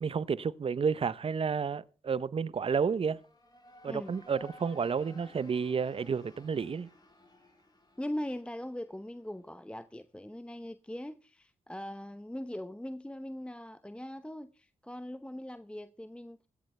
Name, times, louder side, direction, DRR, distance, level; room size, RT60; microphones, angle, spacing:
voice 1, 0.0-3.2 3.8-6.9, right 6 dB, 50° right, 0.8 m, -31 dB
sound 1, 2.9-9.6, left 1 dB, 35° left, 5.7 m, -57 dB
voice 2, 3.9-4.2 8.0-16.5, left 1 dB, 10° left, 0.9 m, -41 dB
16.0 x 15.0 x 3.3 m
supercardioid pair, 45°, 12 cm